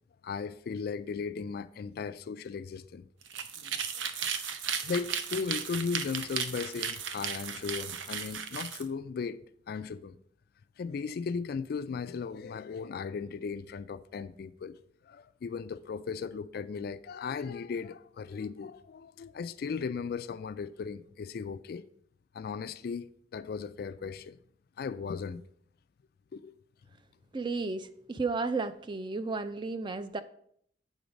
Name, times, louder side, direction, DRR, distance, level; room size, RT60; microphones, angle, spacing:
voice 1, 0.2-3.1 4.0-4.1 4.8-9.4 9.7-10.2 10.8-14.8 15.1-21.8 22.3-23.1 23.3-24.4 24.8-25.4 26.3-26.5, left 5 dB, 55° left, 0.3 m, -36 dB
sound 1, 3.2-8.8, right 7 dB, 80° right, 0.6 m, -35 dB
voice 2, 27.3-30.2, right 3 dB, 25° right, 0.4 m, -33 dB
8.2 x 3.9 x 5.1 m
head